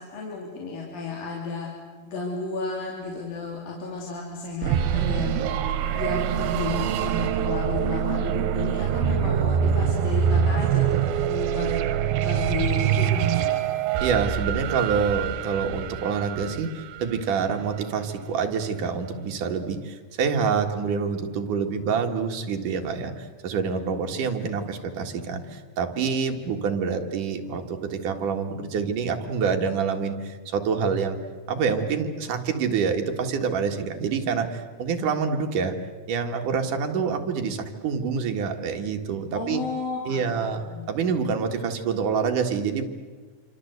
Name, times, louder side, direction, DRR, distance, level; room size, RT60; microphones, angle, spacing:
voice 1, 0.0-1.7 2.0-5.5 5.9-11.7 12.2-13.6 39.4-40.9, left 4 dB, 70° left, -2 dB, 4.9 m, -32 dB
sound 1, 4.6-17.3, right 9 dB, 90° right, 2.9 m, -25 dB
voice 2, 14.0-31.2 31.5-35.8 36.1-39.6 40.1-42.8, right 6 dB, 65° right, 4 dB, 3.3 m, -27 dB
28.0 x 25.5 x 8.2 m, 1.4 s
omnidirectional pair, 4.1 m